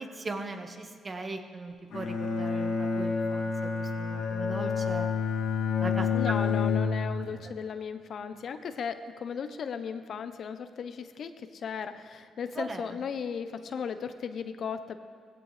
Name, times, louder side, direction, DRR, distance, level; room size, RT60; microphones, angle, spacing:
voice 1, 0.0-5.1 5.8-6.1 12.6-12.8, right 3 dB, 30° right, 5 dB, 1.3 m, -39 dB
Bowed string instrument, 1.9-7.4, left 5 dB, 85° left, 2.7 m, -29 dB
voice 2, 6.1-15.0, left 6 dB, 60° left, 10 dB, 0.8 m, -36 dB
17.0 x 15.5 x 3.4 m, 2.1 s
cardioid pair, 90°, 0 cm